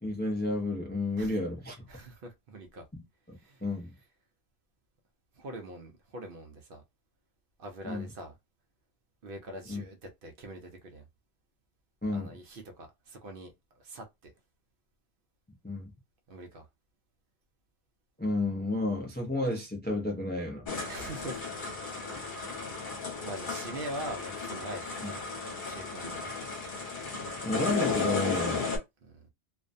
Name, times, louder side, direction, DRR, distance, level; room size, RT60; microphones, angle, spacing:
voice 1, 0.0-1.9 2.9-3.0 3.3-3.9 7.8-8.0 9.7-9.8 12.0-12.4 15.6-15.9 18.2-20.7 27.4-28.6, left 2 dB, 15° left, 0.4 m, -31 dB
voice 2, 1.9-2.8 3.4-3.7 5.4-6.8 7.6-8.4 9.2-11.0 12.1-13.5 13.8-14.3 16.3-16.7 20.8-21.4 22.7-25.2 25.7-26.3 29.0-29.3, right 1 dB, 60° right, 0.7 m, -43 dB
sound 1, 20.7-28.8, left 4 dB, 50° left, 1.0 m, -34 dB
2.4 x 2.1 x 2.5 m
omnidirectional pair, 1.1 m